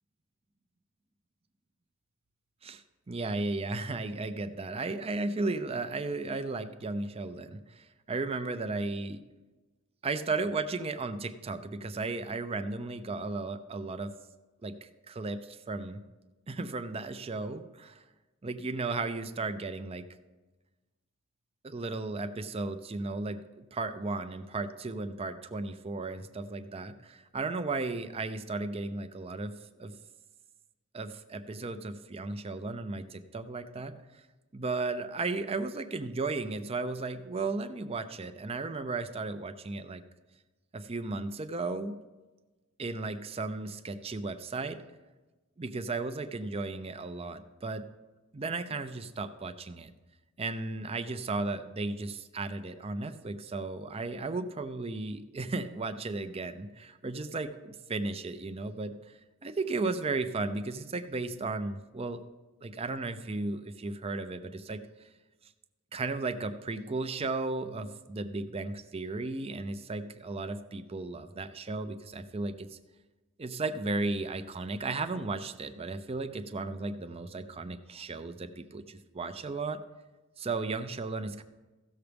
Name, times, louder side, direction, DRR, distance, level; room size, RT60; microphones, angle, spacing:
voice 1, 2.6-9.2 10.0-14.1 14.6-16.0 16.5-18.0 18.4-20.1 21.6-29.9 30.9-34.3 34.5-40.0 40.7-42.0 42.8-44.8 45.6-47.9 48.3-49.9 50.4-62.2 62.6-65.1 65.9-72.8 73.4-79.8 80.4-81.4, right 3 dB, 25° right, 10 dB, 0.5 m, -35 dB
16.0 x 6.9 x 3.4 m, 1.2 s
head